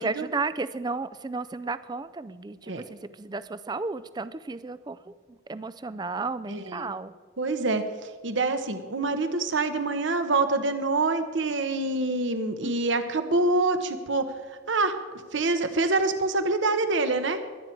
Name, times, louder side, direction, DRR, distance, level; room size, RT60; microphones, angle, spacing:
voice 1, 0.0-7.1 12.6-12.8, right 3 dB, 20° right, 14 dB, 0.3 m, -33 dB
voice 2, 6.5-6.9 7.4-7.8 8.2-14.3 14.7-14.9 15.3-17.4, right 3 dB, 70° right, 8 dB, 1.1 m, -26 dB
22.5 x 9.3 x 4.6 m, 1.5 s
head